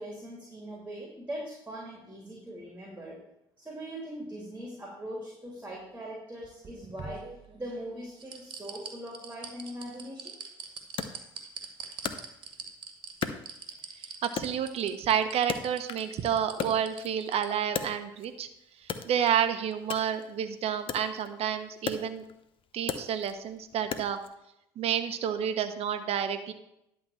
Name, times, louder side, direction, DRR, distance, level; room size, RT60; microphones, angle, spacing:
voice 1, 0.0-3.2 3.6-7.3 7.5-10.3, right 1 dB, 15° right, -2 dB, 3.0 m, -41 dB
sound 1, 6.4-7.8 8.2-17.5 17.8-17.9, right 6 dB, 40° right, 1.9 m, -43 dB
Wood, 11.0-12.8 13.2-14.0 14.4-16.2 16.5-18.4 18.8-24.3, left 6 dB, 45° left, 0.9 m, -38 dB
voice 2, 14.2-18.5 19.0-22.2 22.7-24.2 24.8-26.5, right 9 dB, 55° right, 9 dB, 1.1 m, -29 dB
11.5 x 3.8 x 7.2 m, 0.82 s
hypercardioid pair, 70°, 13 cm